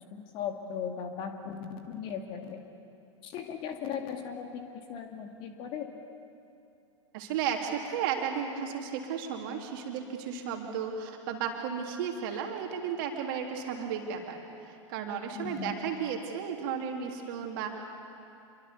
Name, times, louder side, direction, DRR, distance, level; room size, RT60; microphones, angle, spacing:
voice 1, 0.1-2.6 3.2-4.6 4.9-5.9 15.4-15.7, left 7 dB, 30° left, 4 dB, 2.2 m, -37 dB
voice 2, 7.1-17.7, right 7 dB, 45° right, 2 dB, 3.2 m, -34 dB
27.0 x 24.0 x 7.0 m, 2.7 s
figure-of-eight pair, 100°, 16 cm